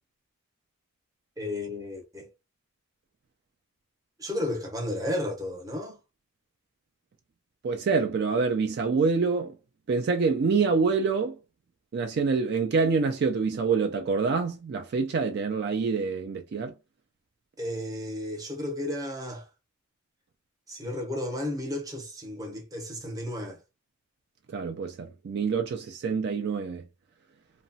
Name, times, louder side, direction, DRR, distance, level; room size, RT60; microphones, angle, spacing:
voice 1, 1.4-2.3 4.2-6.0 17.6-19.5 20.7-23.6, left 1 dB, 15° right, 0.7 m, -33 dB
voice 2, 7.6-9.6 9.9-11.4 11.9-16.7 24.5-26.8, right 4 dB, 50° right, 0.3 m, -26 dB
2.9 x 2.1 x 2.7 m
head